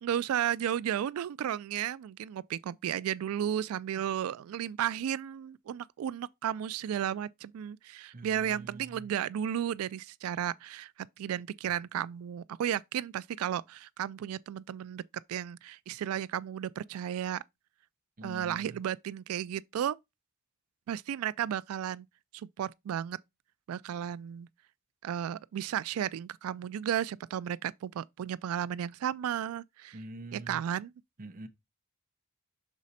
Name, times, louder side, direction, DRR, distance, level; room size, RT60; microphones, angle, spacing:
voice 1, 0.0-10.9 11.2-15.0 15.3-17.4 18.2-20.0 20.9-22.1 22.3-23.2 23.7-24.5 25.0-30.0 30.3-30.9, right 10 dB, 85° right, 0.3 m, -33 dB
voice 2, 8.1-9.1 18.2-18.8 29.9-30.6 31.2-31.5, right 2 dB, 40° right, 0.7 m, -45 dB
6.2 x 4.1 x 4.0 m
head